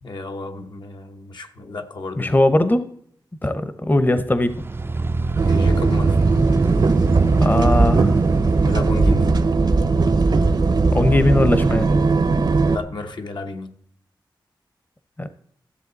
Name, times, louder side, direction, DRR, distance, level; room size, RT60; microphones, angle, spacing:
voice 1, 0.0-2.4 3.4-3.6 5.3-6.2 8.6-9.3 12.7-13.7, left 3 dB, 65° left, 5 dB, 1.0 m, -32 dB
voice 2, 2.2-2.9 3.4-4.6 7.4-8.1 10.9-11.9 15.2-15.3, left 1 dB, 25° left, 11 dB, 0.8 m, -19 dB
sound 1, 4.4-9.4, right 3 dB, 30° right, 0.4 m, -25 dB
sound 2, 5.4-12.8, right 3 dB, 60° right, 0.8 m, -18 dB
13.5 x 7.7 x 4.0 m, 0.65 s
wide cardioid pair, 70°, 8 cm